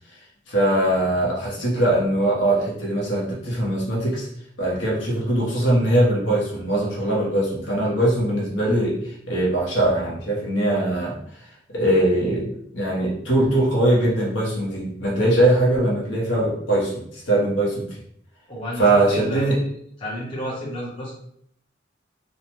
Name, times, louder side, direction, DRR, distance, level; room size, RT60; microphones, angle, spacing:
voice 1, 0.5-4.3 4.6-11.2 11.7-17.9 18.8-19.6, right 1 dB, 70° left, -4 dB, 0.8 m, -21 dB
voice 2, 18.5-19.5 20.0-21.1, equal, 30° left, -6 dB, 0.8 m, -31 dB
2.7 x 2.1 x 2.9 m, 0.68 s
head